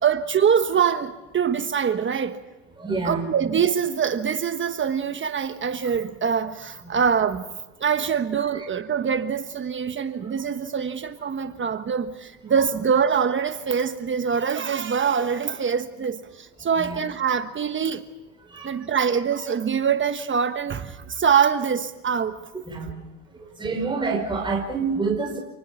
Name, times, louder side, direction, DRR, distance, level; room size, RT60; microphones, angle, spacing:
voice 1, 0.0-2.4 3.0-7.4 7.8-18.0 18.6-22.4, right 7 dB, 30° right, 1.2 m, -24 dB
voice 2, 2.8-3.2 5.8-5.9 6.8-7.0 8.5-8.6 10.2-10.3 16.7-17.0 18.5-18.8 22.7-23.0 23.6-25.4, right 4 dB, 10° right, 5.1 m, -27 dB
29.0 x 19.5 x 6.0 m
supercardioid pair, 105°, 42 cm